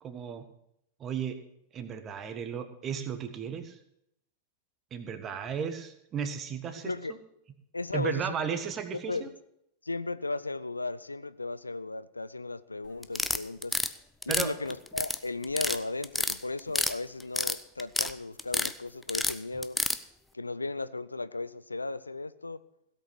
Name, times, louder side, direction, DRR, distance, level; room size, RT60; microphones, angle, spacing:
voice 1, 0.0-0.4 1.0-1.4 1.7-3.8 4.9-6.9 7.9-9.3 14.3-14.5, right 7 dB, 30° right, 1.5 m, -34 dB
voice 2, 6.8-7.1 7.7-8.4 8.9-9.3 9.8-13.8 14.3-19.8 20.3-22.6, left 3 dB, 80° left, 0.4 m, -35 dB
sound 1, 13.0-13.9 14.2-15.2 15.4-15.8 16.0-16.9 17.2-18.1 18.4-18.7 19.1-20.0, left 2 dB, 5° left, 0.6 m, -28 dB
16.5 x 8.1 x 6.0 m
figure-of-eight pair, 90°, 0 cm